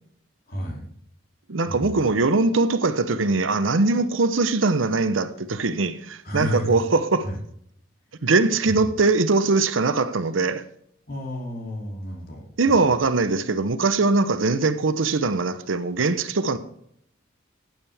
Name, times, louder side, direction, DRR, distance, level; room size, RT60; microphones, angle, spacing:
voice 1, 0.5-0.8 1.7-2.1 6.2-6.8 7.2-7.4 8.6-8.9 11.1-12.9, left 1 dB, 50° left, 3.0 m, -32 dB
voice 2, 1.5-7.2 8.2-10.6 12.6-16.6, right 3 dB, 80° right, 0.8 m, -21 dB
14.5 x 9.0 x 3.5 m
head